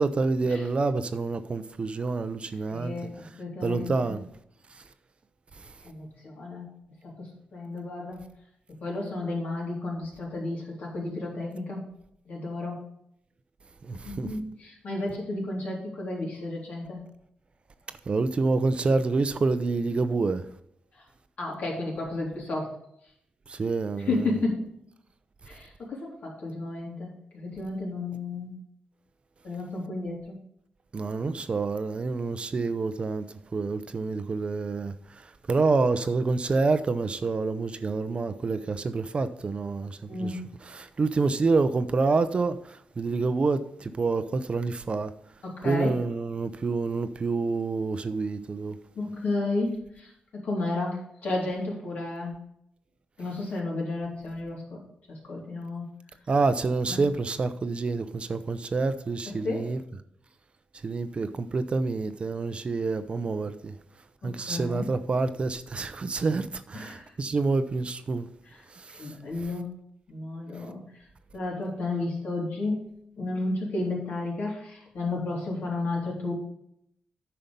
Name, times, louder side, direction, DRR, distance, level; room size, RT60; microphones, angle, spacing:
voice 1, 0.0-2.9 3.6-4.2 13.8-14.3 18.1-20.4 23.5-24.3 30.9-33.3 33.5-34.9 35.5-45.1 45.6-48.8 56.3-59.8 60.8-63.8 64.2-68.3 68.8-69.1, right 3 dB, 40° right, 0.7 m, -27 dB
voice 2, 2.7-4.2 5.8-6.7 7.0-8.3 8.8-11.8 12.3-12.8 14.0-17.0 21.4-22.7 24.0-24.6 25.5-28.6 29.4-30.4 40.1-40.4 45.4-46.0 49.0-52.4 53.2-54.8 55.1-55.9 56.9-57.0 59.3-59.7 64.2-64.9 66.7-67.0 68.9-69.8 70.1-70.8 71.3-72.8 73.2-76.3, left 2 dB, 65° left, 3.5 m, -32 dB
9.1 x 5.6 x 5.3 m
cardioid pair, 90°, 3 cm